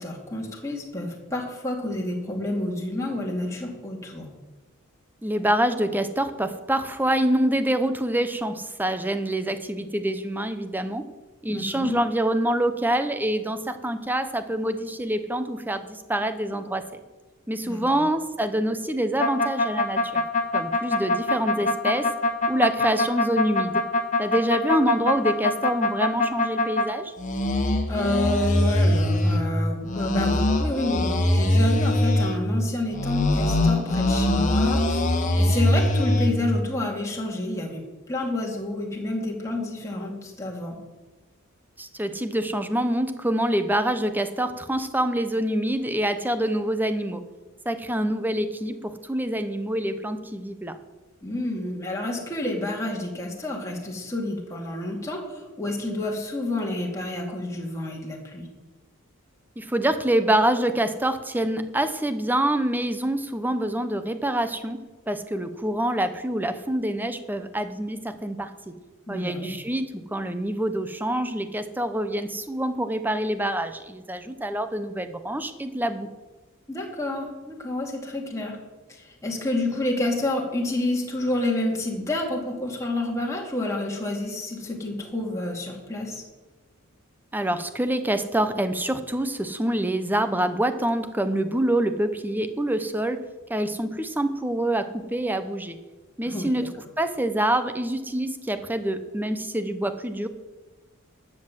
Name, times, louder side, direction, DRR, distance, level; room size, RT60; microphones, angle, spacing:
voice 1, 0.0-4.3 11.5-12.0 17.6-18.0 27.9-40.8 51.2-58.5 69.1-69.5 76.7-78.6 78.9-86.2 96.2-96.7, left 1 dB, 15° left, -1 dB, 2.4 m, -29 dB
voice 2, 5.2-11.0 11.4-17.0 17.5-20.2 20.5-22.1 22.5-23.8 24.2-27.1 41.8-47.2 47.6-50.8 59.6-64.8 65.1-68.7 69.1-76.1 87.3-93.2 93.5-95.8 96.2-96.7 97.0-100.3, right 1 dB, 10° right, 10 dB, 0.8 m, -26 dB
sound 1, 19.2-26.9 27.2-29.4 29.9-32.4 32.9-36.3, left 1 dB, 35° left, 1.5 m, -22 dB
12.5 x 7.6 x 7.7 m, 1.2 s
head